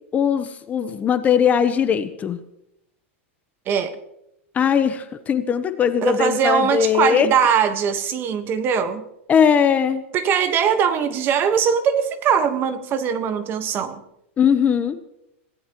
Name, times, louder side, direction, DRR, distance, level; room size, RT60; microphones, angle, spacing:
voice 1, 0.1-2.4 4.5-7.3 9.3-10.0 14.4-15.0, left 7 dB, 20° left, 10 dB, 0.9 m, -19 dB
voice 2, 3.7-4.0 6.0-9.0 10.1-14.0, right 7 dB, 30° right, 10 dB, 1.4 m, -21 dB
26.0 x 17.0 x 3.1 m, 0.83 s
supercardioid pair, 135°, 7 cm